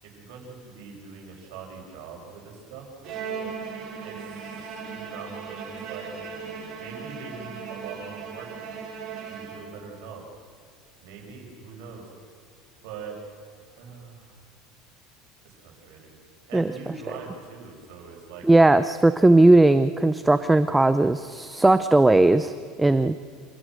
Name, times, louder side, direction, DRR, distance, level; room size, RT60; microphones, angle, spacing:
voice 1, 0.0-2.9 4.0-6.1 6.8-8.5 9.3-10.2 11.0-12.0 12.8-13.2 13.8-14.3 15.4-16.1 16.5-18.4, right 5 dB, 75° right, 0 dB, 7.3 m, -42 dB
Bowed string instrument, 3.0-10.0, right 6 dB, 50° right, 6.8 m, -37 dB
voice 2, 18.4-22.5 22.8-23.2, right 2 dB, 5° right, 12 dB, 0.5 m, -18 dB
28.5 x 16.5 x 6.4 m, 2.2 s
cardioid pair, 145°, 0 cm